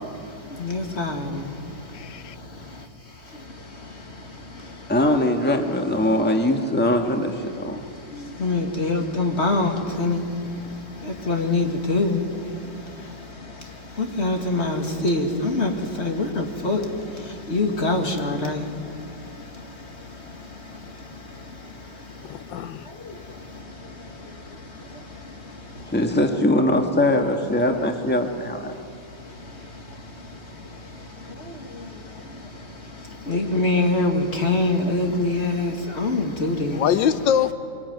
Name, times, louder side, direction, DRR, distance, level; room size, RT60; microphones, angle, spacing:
voice 1, 0.4-2.7 3.5-4.9 7.7-25.9 29.2-36.8, left 2 dB, 35° left, 3 dB, 2.4 m, -27 dB
voice 2, 1.9-2.3 22.3-22.9 36.7-37.5, left 8 dB, 85° left, 12 dB, 1.5 m, -23 dB
voice 3, 4.9-7.8 25.9-28.7, left 1 dB, 5° left, 3 dB, 1.7 m, -21 dB
23.5 x 22.5 x 9.5 m, 2.4 s
omnidirectional pair, 2.0 m